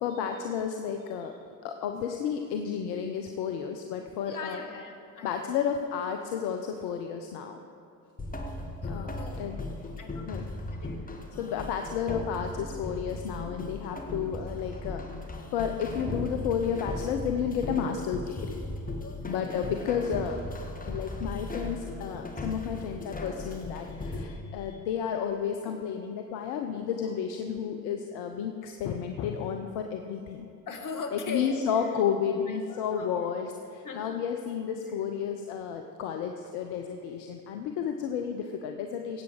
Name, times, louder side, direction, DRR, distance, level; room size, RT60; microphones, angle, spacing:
voice 1, 0.0-1.4 1.6-4.6 5.2-7.6 8.9-9.6 10.3-10.5 11.4-15.0 15.5-18.6 19.3-30.5 31.1-39.2, left 7 dB, 65° left, 5 dB, 0.9 m, -32 dB
voice 2, 4.2-5.7 8.8-9.6 10.0-10.3 10.7-11.7 19.0-19.5 30.7-31.9 32.5-33.3 33.8-34.2, left 4 dB, 45° left, 4 dB, 1.9 m, -40 dB
sound 1, 8.2-24.2, left 2 dB, 20° left, 1.8 m, -37 dB
16.5 x 8.3 x 4.9 m, 2.5 s
hypercardioid pair, 60°, 42 cm